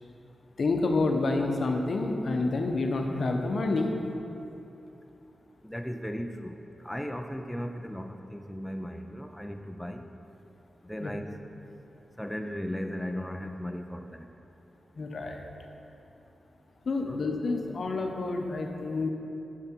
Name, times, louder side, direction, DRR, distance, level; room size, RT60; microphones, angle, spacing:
voice 1, 0.6-4.0 11.0-11.1 15.0-15.4 16.9-19.1, left 3 dB, 65° left, 3 dB, 0.9 m, -28 dB
voice 2, 5.6-6.6 6.8-10.0 10.8-11.3 12.2-14.3 17.0-17.2, equal, 5° left, 5 dB, 0.5 m, -36 dB
9.6 x 6.6 x 4.5 m, 3.0 s
cardioid pair, 65°, 0 cm